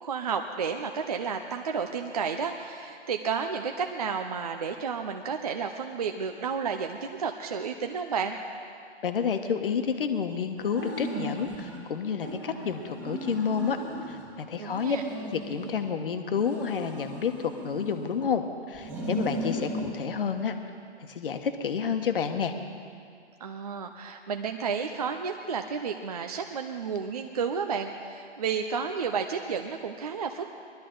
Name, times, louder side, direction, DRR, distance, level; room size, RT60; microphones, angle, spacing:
voice 1, 0.0-8.4 14.6-15.0 23.4-30.5, right 6 dB, 35° right, 4 dB, 0.6 m, -31 dB
voice 2, 9.0-13.8 14.1-15.0 15.2-20.5 21.0-22.5, left 6 dB, 50° left, 7 dB, 1.3 m, -30 dB
sound 1, 10.6-11.8 12.2-14.3 14.7-15.9 16.3-18.3 18.7-19.9, equal, 5° right, 1.7 m, -36 dB
21.5 x 12.5 x 3.9 m, 2.4 s
hypercardioid pair, 155°, 34 cm